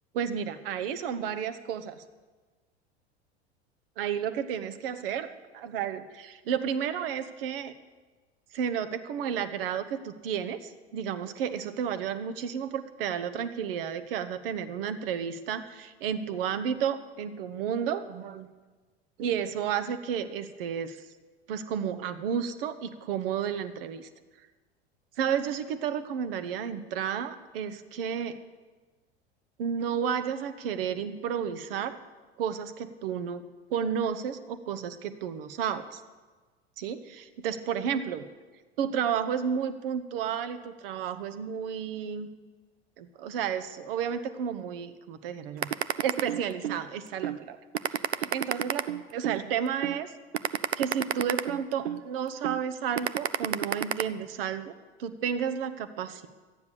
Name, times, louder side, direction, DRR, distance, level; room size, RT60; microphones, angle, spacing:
voice 1, 0.1-2.0 4.0-5.3 5.5-7.7 8.5-18.5 19.2-21.0 21.5-24.1 25.2-28.4 29.6-32.0 32.4-33.4 33.7-36.0 36.8-38.2 38.8-42.3 43.0-45.7 46.0-47.6 47.9-50.1 50.8-56.3, right 8 dB, 55° right, 11 dB, 1.1 m, -32 dB
sound 1, 45.6-46.8 47.2-47.4 47.7-49.4 49.8-50.0 50.3-52.0 52.4-52.6 53.0-54.0, right 10 dB, 75° right, 0.6 m, -29 dB
13.5 x 9.6 x 6.9 m, 1.3 s
figure-of-eight pair, 80°, 33 cm